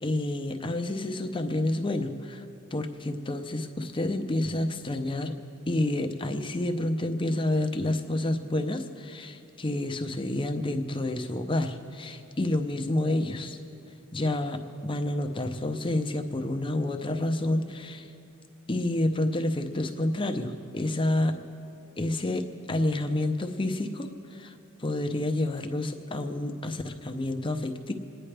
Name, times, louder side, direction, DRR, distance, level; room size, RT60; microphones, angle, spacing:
voice 1, 0.0-2.4 2.7-5.4 5.7-13.6 14.1-18.1 18.7-21.4 22.0-27.9, left 1 dB, 25° left, 6 dB, 0.7 m, -29 dB
28.0 x 10.0 x 3.4 m, 2.6 s
head